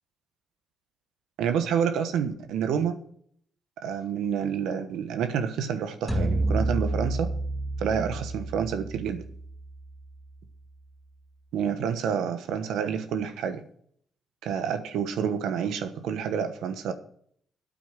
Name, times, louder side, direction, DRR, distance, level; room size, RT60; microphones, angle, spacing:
voice 1, 1.4-2.9 3.8-7.3 7.8-9.2 11.5-13.6 14.4-16.9, right 7 dB, 85° right, 9 dB, 1.2 m, -28 dB
sound 1, 6.1-10.4, right 2 dB, 5° right, 1.7 m, -30 dB
9.0 x 8.6 x 7.6 m, 0.62 s
cardioid pair, 90°, 0 cm